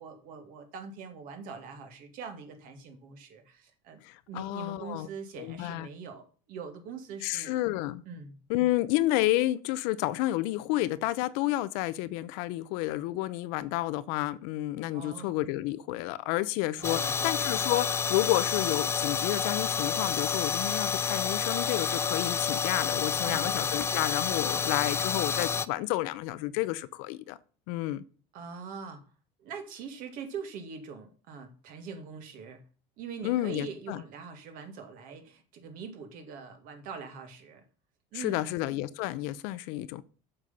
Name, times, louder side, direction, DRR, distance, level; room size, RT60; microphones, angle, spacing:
voice 1, 0.0-4.0 4.3-7.5 8.1-8.4 14.9-15.3 16.8-17.4 23.3-23.5 28.3-29.0 29.4-32.6 33.0-37.6 38.1-38.4, right 5 dB, 60° right, 2.2 m, -43 dB
voice 2, 4.0-5.1 5.4-5.9 7.2-8.0 8.5-27.4 27.7-28.0 33.2-34.0 38.1-40.0, left 16 dB, 75° left, 0.7 m, -30 dB
sound 1, 16.8-25.7, left 6 dB, 15° left, 0.3 m, -29 dB
7.7 x 6.3 x 5.5 m
cardioid pair, 135°, 16 cm